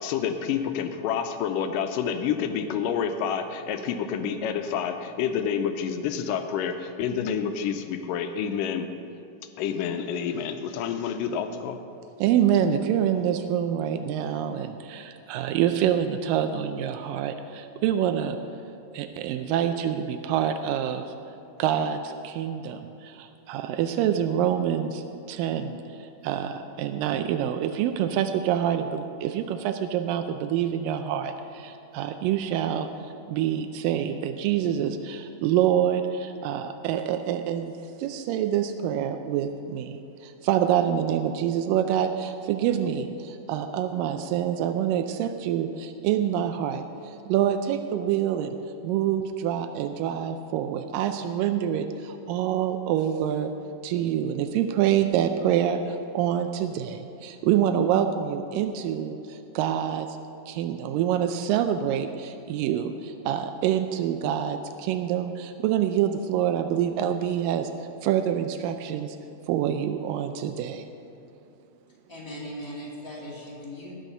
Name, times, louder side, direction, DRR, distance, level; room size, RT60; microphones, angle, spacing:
voice 1, 0.0-8.9 9.6-11.8, left 7 dB, 80° left, 7 dB, 2.2 m, -28 dB
voice 2, 12.2-18.4 18.9-21.1 21.6-48.6 48.8-53.5 53.8-60.2 60.5-69.2 69.5-70.9, right 9 dB, 90° right, 7 dB, 2.3 m, -26 dB
voice 3, 72.1-73.9, equal, 10° left, -6 dB, 2.1 m, -38 dB
18.5 x 6.3 x 5.4 m, 2.8 s
omnidirectional pair, 3.9 m